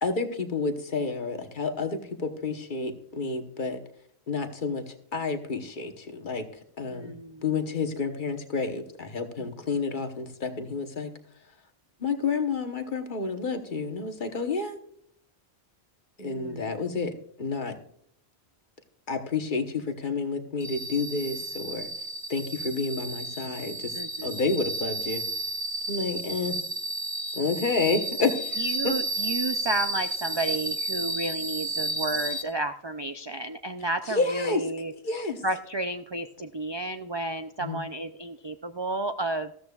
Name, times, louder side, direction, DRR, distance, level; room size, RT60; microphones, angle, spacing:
voice 1, 0.0-3.8 4.3-6.5 6.8-7.1 7.4-11.1 12.0-14.8 16.2-17.7 19.1-21.9 22.3-24.0 24.2-25.2 25.9-26.6 27.3-28.9 34.1-34.6 35.0-35.4 37.6-37.8, left 4 dB, 50° left, 6 dB, 1.2 m, -30 dB
voice 2, 6.9-7.4 9.4-9.5 16.2-16.8 23.9-24.3 28.6-34.9 35.4-39.5, right 2 dB, 45° right, 8 dB, 0.3 m, -32 dB
sound 1, 20.6-32.4, right 1 dB, 30° right, 1.1 m, -32 dB
14.0 x 13.5 x 2.4 m, 0.66 s
omnidirectional pair, 1.1 m